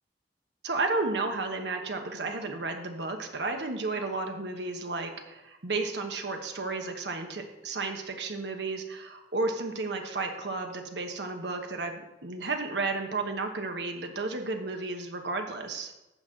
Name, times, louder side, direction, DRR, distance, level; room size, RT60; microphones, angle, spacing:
voice 1, 0.6-15.9, right 3 dB, 75° right, 4 dB, 1.2 m, -33 dB
11.5 x 4.2 x 7.6 m, 0.96 s
head